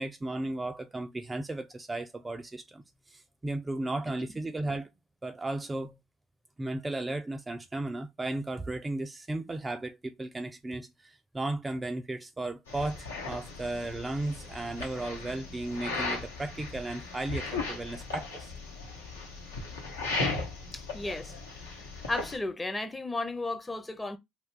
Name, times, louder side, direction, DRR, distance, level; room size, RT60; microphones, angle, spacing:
voice 1, 0.0-4.9 5.2-6.0 6.6-18.5, right 2 dB, 20° right, 0.3 m, -35 dB
sound 1, 12.7-22.4, left 3 dB, 80° left, 0.9 m, -37 dB
voice 2, 20.7-21.4 22.1-24.2, left 2 dB, 15° left, 0.6 m, -34 dB
2.4 x 2.3 x 3.6 m
figure-of-eight pair, 55°, 0 cm